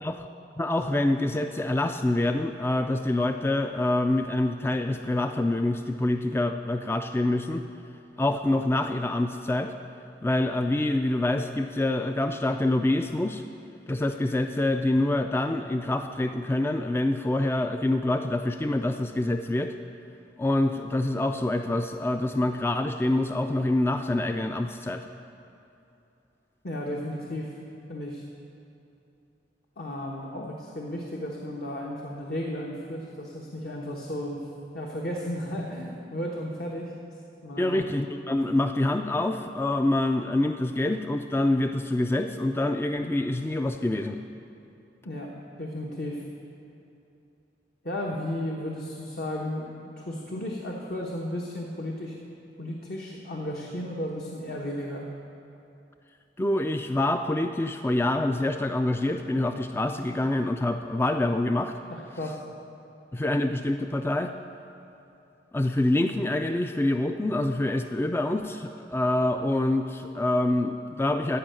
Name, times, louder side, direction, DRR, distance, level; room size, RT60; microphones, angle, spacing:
voice 1, 0.6-7.6 8.2-9.7 10.2-13.4 13.9-19.7 20.4-25.1 37.6-44.2 56.4-61.7 63.1-64.3 65.5-71.4, left 1 dB, 15° left, 6 dB, 0.3 m, -26 dB
voice 2, 26.6-27.5 27.9-28.2 29.8-34.4 34.7-36.9 37.4-37.8 45.0-46.2 47.8-52.2 52.6-55.1 61.9-62.4, left 1 dB, 60° left, -2 dB, 1.1 m, -34 dB
15.0 x 5.5 x 9.1 m, 2.8 s
head